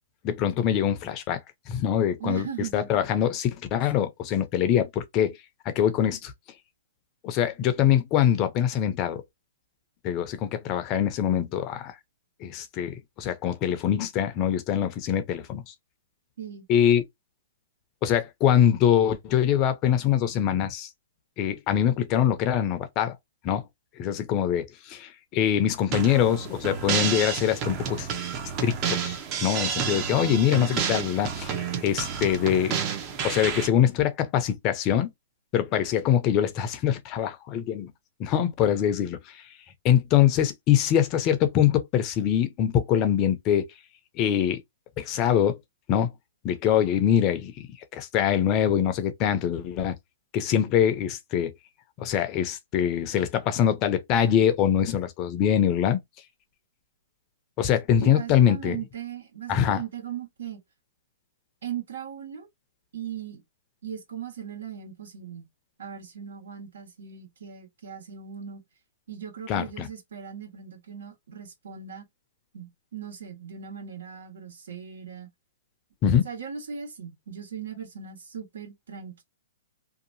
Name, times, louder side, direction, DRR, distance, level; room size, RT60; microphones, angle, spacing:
voice 1, 0.2-1.4 1.7-2.5 2.7-5.4 5.7-6.3 7.2-9.2 10.0-11.9 12.4-15.7 16.7-17.0 18.0-20.9 21.4-23.1 23.4-23.6 24.0-28.1 28.6-32.8 33.2-35.1 35.5-37.9 38.2-39.2 39.8-43.7 44.2-44.6 45.0-45.6 45.9-46.1 46.4-47.7 47.9-49.9 50.3-51.5 52.0-56.0 57.6-58.8 59.5-59.8 69.5-69.9 76.0-76.2, left 9 dB, 30° left, 0.6 m, -23 dB
voice 2, 2.2-2.9 3.9-4.1 16.4-16.6 29.9-30.4 58.0-60.6 61.6-62.5 62.9-63.4 63.8-65.5 65.8-68.6 69.1-72.0 72.5-75.3 76.2-79.2, right 8 dB, 80° right, 1.4 m, -38 dB
sound 1, 25.9-33.7, right 7 dB, 30° right, 0.7 m, -30 dB
2.8 x 2.3 x 2.6 m
hypercardioid pair, 145°, 0 cm